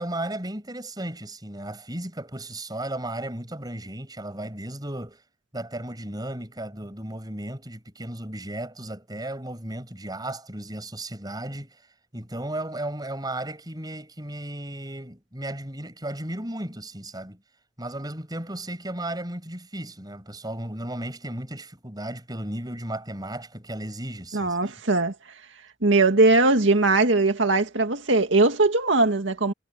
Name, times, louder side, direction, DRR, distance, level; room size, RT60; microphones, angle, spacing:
voice 1, 0.0-5.2 5.5-11.9 12.1-17.4 17.8-24.7, right 1 dB, 20° right, 6.9 m, -35 dB
voice 2, 24.3-25.1 25.8-29.5, right 2 dB, 90° right, 2.0 m, -20 dB
head